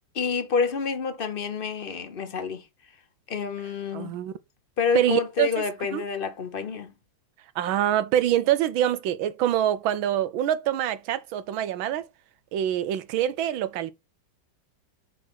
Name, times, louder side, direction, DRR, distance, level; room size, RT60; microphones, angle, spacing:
voice 1, 0.1-2.7 3.3-4.2 4.8-6.9, left 5 dB, 35° left, 1.0 m, -28 dB
voice 2, 3.9-4.3 4.9-5.5 5.9-6.0 7.5-12.0 12.5-13.9, right 11 dB, 90° right, 1.6 m, -25 dB
6.5 x 4.2 x 6.1 m
omnidirectional pair, 2.1 m